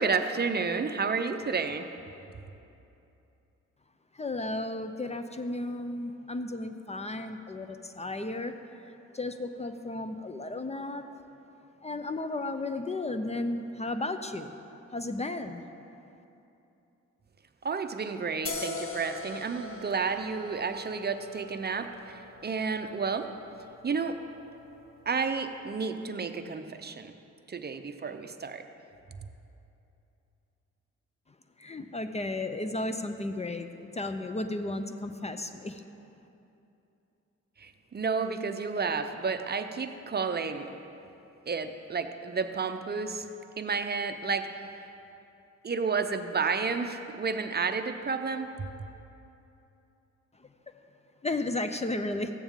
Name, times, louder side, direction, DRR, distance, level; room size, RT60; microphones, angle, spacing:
voice 1, 0.0-1.9 17.6-23.3 23.8-24.2 25.1-27.1 27.5-28.7 37.6-40.7 41.5-43.3 43.6-44.6 45.6-48.5, right 5 dB, 35° right, 8 dB, 0.6 m, -31 dB
voice 2, 4.2-8.5 9.1-11.1 11.8-14.6 14.9-15.6 31.6-35.8 51.2-52.3, left 2 dB, 20° left, 8 dB, 0.5 m, -34 dB
sound 1, 18.5-25.8, left 3 dB, 45° left, 1.2 m, -42 dB
14.5 x 8.7 x 3.6 m, 2.8 s
cardioid pair, 70°, 29 cm